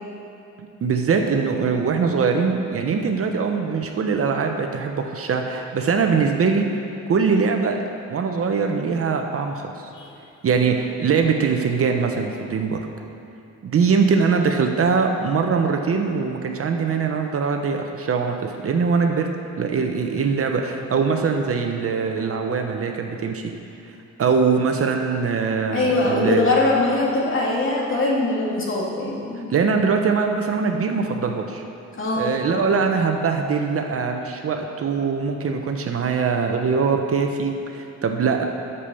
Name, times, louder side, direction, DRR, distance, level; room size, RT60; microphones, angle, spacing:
voice 1, 0.8-6.7 7.1-7.8 8.1-9.9 10.4-12.8 13.6-19.3 19.6-23.4 24.2-26.5 29.3-31.6 32.2-38.5, right 5 dB, 50° right, 4 dB, 0.9 m, -22 dB
voice 2, 25.7-29.4 32.0-32.3, left 2 dB, 40° left, -4 dB, 2.7 m, -22 dB
8.4 x 7.0 x 7.0 m, 2.7 s
cardioid pair, 90°, 30 cm